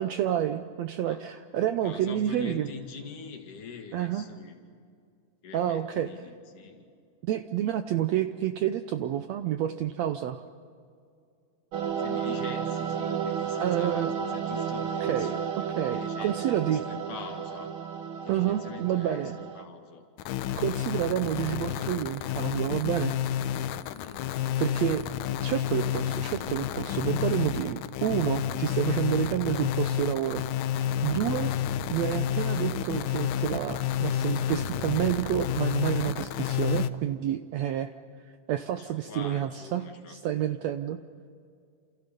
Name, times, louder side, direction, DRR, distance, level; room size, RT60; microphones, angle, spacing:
voice 1, 0.0-2.7 3.9-4.3 5.5-6.1 7.2-10.4 13.6-14.1 15.0-15.4 15.8-16.8 18.3-19.4 20.6-23.2 24.6-25.0 25.4-31.5 31.9-37.9 38.5-41.0, right 11 dB, 75° right, 9 dB, 1.6 m, -29 dB
voice 2, 1.8-4.6 5.4-6.9 12.0-17.7 18.2-20.0 23.9-24.6 38.8-40.2, left 6 dB, 70° left, 3 dB, 3.6 m, -44 dB
sound 1, 11.7-19.6, right 7 dB, 55° right, 1.5 m, -32 dB
sound 2, 20.2-36.9, left 10 dB, 90° left, 2.4 m, -30 dB
Alarm, 21.0-25.4, left 1 dB, 35° right, 7.8 m, -62 dB
28.5 x 28.5 x 5.4 m, 2.3 s
omnidirectional pair, 3.8 m